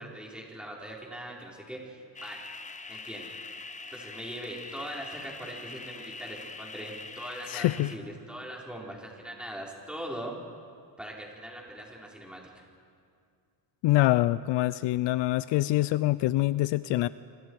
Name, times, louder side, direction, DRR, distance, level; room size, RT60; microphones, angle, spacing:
voice 1, 0.0-2.4 2.9-3.3 3.9-10.4 11.0-12.6, right 1 dB, ahead, -3 dB, 4.6 m, -41 dB
sound 1, 2.2-8.0, left 3 dB, 15° left, 0.8 m, -43 dB
voice 2, 7.5-7.9 13.8-17.1, left 16 dB, 65° left, 16 dB, 0.6 m, -25 dB
26.5 x 26.0 x 4.8 m, 2.3 s
cardioid pair, 125°, 46 cm